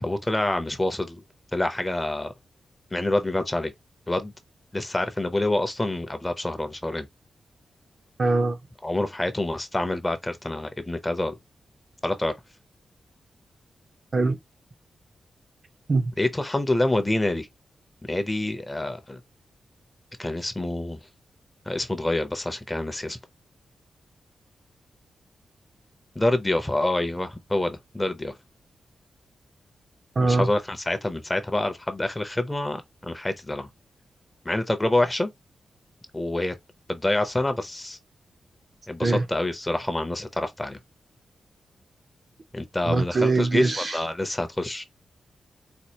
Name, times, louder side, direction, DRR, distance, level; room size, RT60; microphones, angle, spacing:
voice 1, 0.0-1.2 1.5-2.3 2.9-3.7 4.1-4.3 4.7-7.1 8.8-11.4 12.0-12.3 16.2-17.5 18.1-19.2 20.2-21.0 21.7-23.2 26.2-28.3 30.2-33.7 34.4-35.3 36.1-36.5 36.9-38.0 38.9-40.8 42.5-44.8, left 1 dB, 10° left, 0.6 m, -27 dB
voice 2, 8.2-8.6 14.1-14.4 15.9-16.1 30.2-30.5 39.0-39.2 42.9-44.0, right 3 dB, 35° right, 0.5 m, -22 dB
4.3 x 2.3 x 2.8 m
wide cardioid pair, 160°, 0 cm